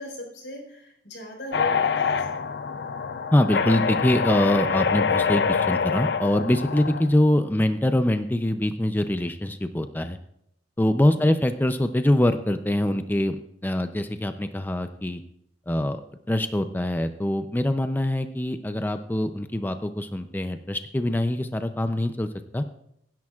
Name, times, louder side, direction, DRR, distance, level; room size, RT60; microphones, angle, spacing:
voice 1, 0.0-2.4 11.1-11.4, left 1 dB, 85° left, 2 dB, 4.1 m, -38 dB
sound 1, 1.5-7.1, left 5 dB, 65° left, 0.5 m, -25 dB
voice 2, 3.3-10.2 10.8-13.4 13.6-15.2 15.7-16.0 16.3-22.6, left 1 dB, 10° left, 8 dB, 0.5 m, -24 dB
23.0 x 10.5 x 2.4 m, 0.74 s
head